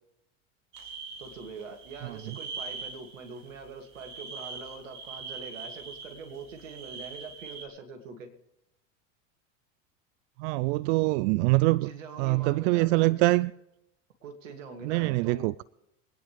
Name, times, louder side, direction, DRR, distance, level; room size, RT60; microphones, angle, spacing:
sound 1, 0.7-7.7, right 4 dB, 50° right, 3.2 m, -42 dB
voice 1, 1.2-8.3 11.6-13.3 14.2-15.6, right 4 dB, 85° right, 2.9 m, -44 dB
voice 2, 2.0-2.4 10.4-11.9 12.2-13.5 14.8-15.6, right 22 dB, 65° right, 0.5 m, -24 dB
24.5 x 10.0 x 3.5 m
hypercardioid pair, 95°, 37 cm